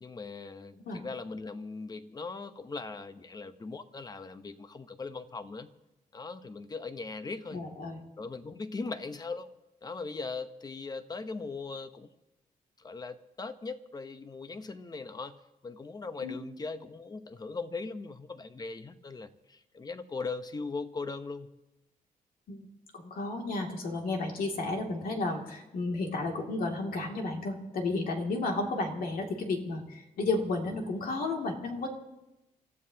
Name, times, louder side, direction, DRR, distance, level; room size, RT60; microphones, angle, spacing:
voice 1, 0.0-5.7 6.1-7.6 8.2-9.5 9.8-12.1 12.8-21.5, left 4 dB, 25° left, 10 dB, 0.8 m, -39 dB
voice 2, 7.5-8.0 16.2-16.3 22.5-22.6 22.9-31.9, left 3 dB, 85° left, 1 dB, 2.4 m, -32 dB
28.5 x 14.0 x 2.8 m, 0.95 s
wide cardioid pair, 130°, 15 cm